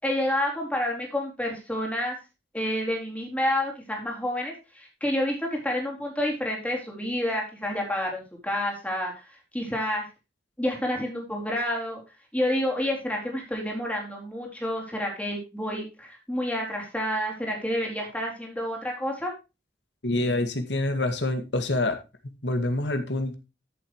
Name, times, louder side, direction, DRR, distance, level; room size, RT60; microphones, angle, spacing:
voice 1, 0.0-2.2 2.5-9.1 9.5-10.0 10.6-12.0 12.3-19.3, left 1 dB, 10° left, -1 dB, 4.0 m, -29 dB
voice 2, 20.0-22.0 22.2-23.3, left 2 dB, 80° left, 7 dB, 2.2 m, -26 dB
13.5 x 7.6 x 3.1 m, 0.27 s
head